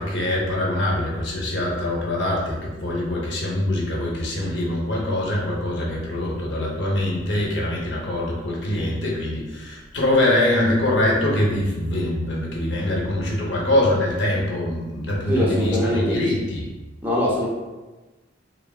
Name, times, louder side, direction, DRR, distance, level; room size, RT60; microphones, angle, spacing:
voice 1, 0.0-16.7, left 1 dB, 70° left, -3 dB, 0.6 m, -23 dB
voice 2, 15.3-16.2 17.0-17.5, equal, 10° right, -5 dB, 0.5 m, -22 dB
3.2 x 2.1 x 2.3 m, 1.2 s
head